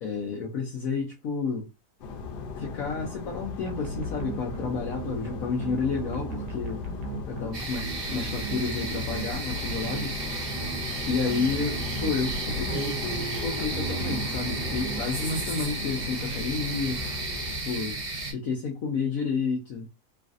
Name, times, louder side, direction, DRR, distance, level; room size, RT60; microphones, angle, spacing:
voice 1, 0.0-1.7 2.6-6.8 7.3-10.2 11.1-17.0 17.6-18.0 18.3-19.9, left 5 dB, 65° left, 1.0 m, -31 dB
sound 1, 2.0-17.6, left 4 dB, 85° left, 1.2 m, -37 dB
sound 2, 3.7-15.5, right 6 dB, 85° right, 1.3 m, -38 dB
sound 3, 7.5-18.3, right 3 dB, 45° right, 1.2 m, -34 dB
3.2 x 2.5 x 2.4 m
omnidirectional pair, 1.7 m